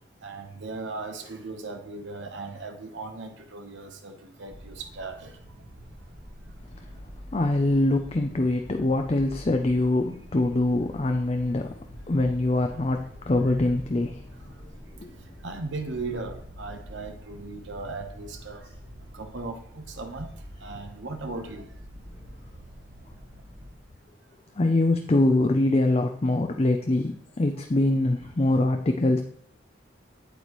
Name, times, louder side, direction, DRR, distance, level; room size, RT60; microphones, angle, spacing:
voice 1, 0.2-5.4 15.4-18.7 19.1-20.3 20.6-21.7, right 3 dB, 75° right, 5 dB, 1.0 m, -37 dB
sound 1, 4.5-23.8, equal, 45° right, 1.5 m, -46 dB
voice 2, 7.3-11.7 12.1-14.2 15.0-15.1 24.6-29.2, left 2 dB, 30° left, 5 dB, 0.5 m, -23 dB
8.5 x 8.2 x 3.1 m, 0.72 s
head